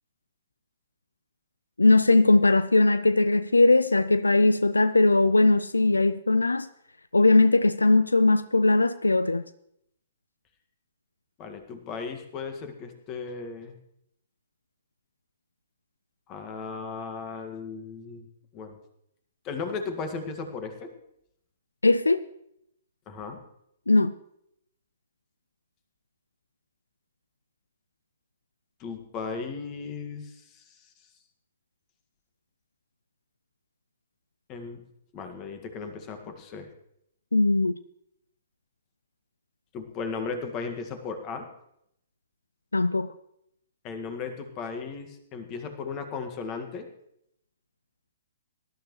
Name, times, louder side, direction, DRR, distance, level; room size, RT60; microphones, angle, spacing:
voice 1, 1.8-6.7 7.1-9.4 21.8-22.2 23.9-24.1 37.3-37.8 42.7-43.1, left 2 dB, 85° left, 15 dB, 0.4 m, -20 dB
voice 2, 11.4-13.8 16.3-18.3 18.5-18.8 19.4-20.9 23.1-23.4 28.8-30.8 34.5-34.8 35.1-36.7 39.7-41.5 43.8-46.9, left 5 dB, 30° left, 6 dB, 1.8 m, -36 dB
19.5 x 12.0 x 3.2 m, 0.76 s
figure-of-eight pair, 120°, 0 cm